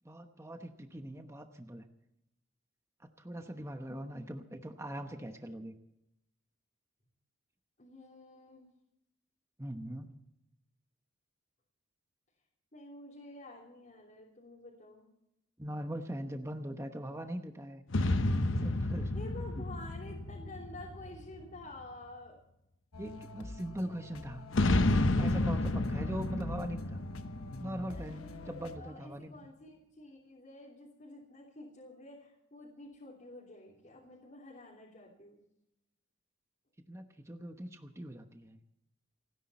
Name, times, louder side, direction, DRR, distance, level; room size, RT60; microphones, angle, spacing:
voice 1, 0.0-1.9 3.0-5.8 9.6-10.1 15.6-17.8 18.6-19.1 23.0-24.4 25.2-27.0 27.6-29.3 36.9-38.6, right 1 dB, 15° right, 6 dB, 1.0 m, -41 dB
voice 2, 7.8-8.7 12.7-15.1 19.1-22.4 27.9-35.4, left 2 dB, 35° left, -4 dB, 3.4 m, -50 dB
sound 1, 17.9-21.6 24.5-28.3, left 2 dB, 60° left, 1.0 m, -31 dB
sound 2, 22.9-28.8, left 1 dB, 85° left, 1.2 m, -46 dB
29.5 x 10.0 x 4.3 m, 0.83 s
head